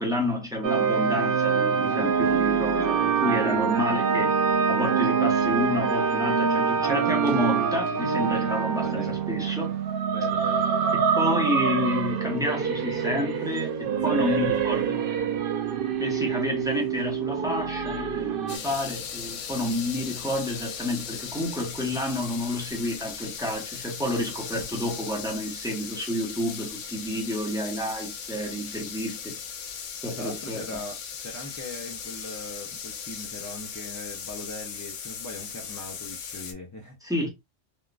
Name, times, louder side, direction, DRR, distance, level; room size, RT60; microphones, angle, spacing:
voice 1, 0.0-4.4 4.7-9.8 10.9-15.0 16.0-29.4 30.0-30.8 37.0-37.3, left 1 dB, 5° right, 0.9 m, -30 dB
sound 1, 0.6-18.6, right 6 dB, 60° right, 0.7 m, -25 dB
voice 2, 8.8-9.2 10.1-10.7 13.9-14.7 30.1-37.1, left 2 dB, 25° left, 0.4 m, -40 dB
sound 2, 18.5-36.5, left 7 dB, 85° left, 0.9 m, -38 dB
3.5 x 2.4 x 2.4 m
omnidirectional pair, 1.2 m